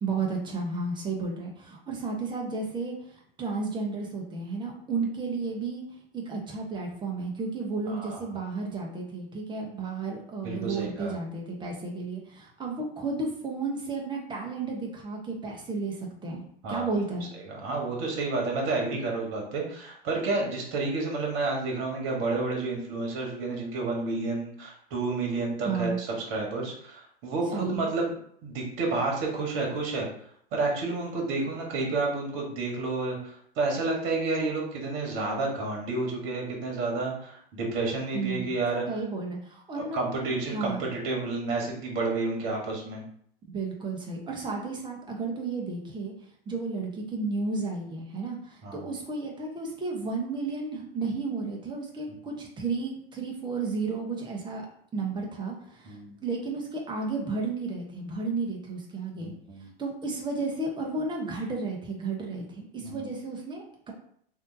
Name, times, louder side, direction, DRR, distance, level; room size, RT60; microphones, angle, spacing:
voice 1, 0.0-5.8 6.1-17.3 25.7-26.0 27.5-27.9 38.1-38.5 38.9-40.0 40.5-40.9 43.5-46.1 46.5-54.7 54.9-59.3 59.8-63.9, right 3 dB, 15° right, 0 dB, 0.8 m, -33 dB
voice 2, 10.4-11.2 16.6-16.9 17.5-28.1 28.4-30.1 30.5-38.9 39.7-43.0 48.6-48.9 55.9-56.1 59.2-59.7 62.8-63.1, right 3 dB, 45° right, -1 dB, 1.4 m, -30 dB
3.4 x 2.7 x 2.7 m, 0.64 s
hypercardioid pair, 105°, 30 cm